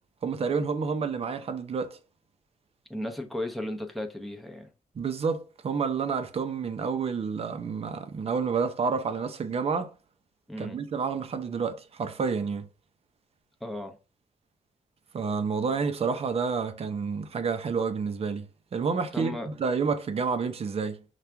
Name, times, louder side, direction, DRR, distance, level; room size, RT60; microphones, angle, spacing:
voice 1, 0.2-2.0 4.9-9.9 10.6-12.7 15.1-18.5 18.7-21.0, right 5 dB, 45° right, 0.7 m, -29 dB
voice 2, 2.9-4.7 10.5-10.8 13.6-14.0 19.1-19.5, left 1 dB, ahead, 0.8 m, -35 dB
5.7 x 2.4 x 3.4 m
cardioid pair, 110°, 14 cm